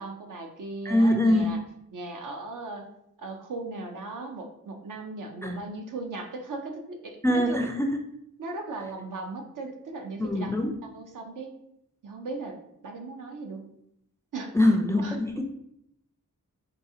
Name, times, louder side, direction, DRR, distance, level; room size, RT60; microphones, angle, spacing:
voice 1, 0.0-1.6 1.9-2.9 3.2-7.2 7.5-7.6 8.4-10.5 10.8-11.6 12.0-12.6 12.8-13.7 14.3-14.5 15.0-15.2, right 3 dB, 65° right, 3 dB, 0.6 m, -37 dB
voice 2, 0.8-1.5 5.4-5.6 7.2-7.9 10.2-10.7 14.5-15.4, left 1 dB, 10° left, 3 dB, 0.3 m, -23 dB
3.9 x 2.4 x 2.7 m, 0.77 s
cardioid pair, 65°, 34 cm